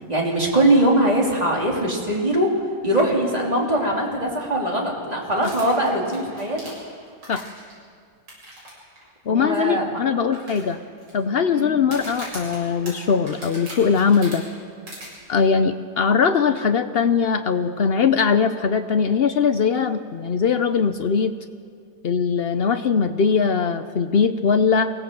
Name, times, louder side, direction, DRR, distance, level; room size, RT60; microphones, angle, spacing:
voice 1, 0.1-2.5 2.8-6.6 9.3-10.0 11.5-11.8, right 1 dB, 20° right, -2 dB, 3.3 m, -21 dB
sound 1, 5.4-7.7 8.3-8.7 9.0-9.1 9.6-9.7 10.3-11.1 11.8-14.4 14.9-15.1, right 1 dB, 85° right, 8.0 m, -38 dB
voice 2, 9.3-10.8 11.1-14.4 15.3-21.3 22.0-24.9, left 6 dB, 75° left, 9 dB, 0.5 m, -20 dB
23.5 x 17.0 x 7.7 m, 2.1 s
omnidirectional pair, 1.9 m